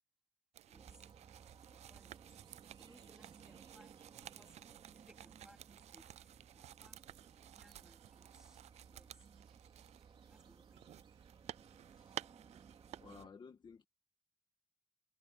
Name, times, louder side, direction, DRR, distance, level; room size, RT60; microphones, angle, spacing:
sound 1, 0.5-13.2, right 12 dB, 85° right, 0.4 m, -54 dB
voice 1, 0.7-1.1 1.7-2.2 2.8-7.0 7.5-8.6 8.9-9.3 10.3-11.1, right 1 dB, 5° right, 3.9 m, -66 dB
sound 2, 0.7-13.3, right 6 dB, 50° right, 3.7 m, -60 dB
voice 2, 13.0-13.9, left 5 dB, 45° left, 1.7 m, -56 dB
wide cardioid pair, 135°, 11 cm